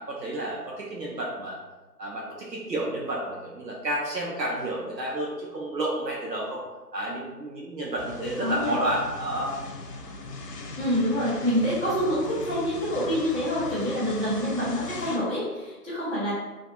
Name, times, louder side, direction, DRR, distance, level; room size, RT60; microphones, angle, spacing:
voice 1, 0.0-1.6 2.0-6.6 6.9-9.5, right 1 dB, 85° right, -4 dB, 0.7 m, -30 dB
sound 1, 8.0-15.2, left 2 dB, 70° left, 0.5 m, -39 dB
voice 2, 8.4-8.8 10.8-16.3, equal, 35° right, -12 dB, 0.9 m, -26 dB
2.5 x 2.3 x 2.5 m, 1.2 s
figure-of-eight pair, 165°, 49 cm